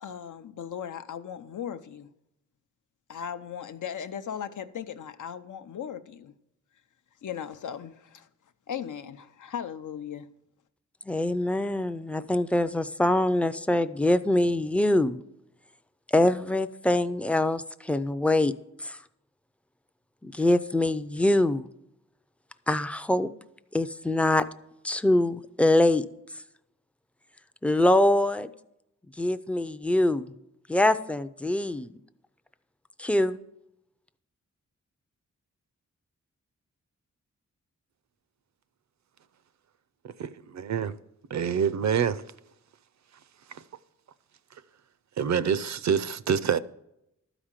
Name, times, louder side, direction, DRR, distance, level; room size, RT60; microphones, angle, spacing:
voice 1, 0.0-2.1 3.1-6.3 7.2-8.3 8.7-10.3, left 8 dB, 90° left, 0.7 m, -37 dB
voice 2, 11.1-15.2 16.1-18.5 18.8-19.0 20.2-21.6 22.7-23.3 23.7-24.4 24.8-26.0 27.6-28.5 29.2-30.3 30.7-31.9 33.0-33.4, left 1 dB, 5° left, 0.3 m, -24 dB
voice 3, 40.0-40.9 41.3-42.2 43.5-43.6 45.2-46.6, right 7 dB, 70° right, 0.5 m, -26 dB
12.5 x 5.0 x 7.3 m
wide cardioid pair, 150°, 29 cm